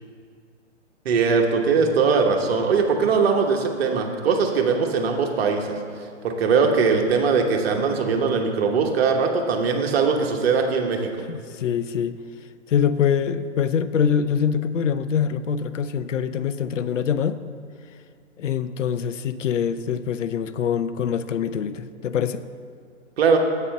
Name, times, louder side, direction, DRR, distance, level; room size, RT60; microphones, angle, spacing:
voice 1, 1.0-5.8 6.2-11.1 23.2-23.4, right 5 dB, 55° right, 3 dB, 1.1 m, -21 dB
voice 2, 11.3-12.2 12.7-17.4 18.4-22.4, left 7 dB, 85° left, 13 dB, 0.5 m, -24 dB
8.1 x 4.2 x 6.5 m, 2.2 s
hypercardioid pair, 140°, 36 cm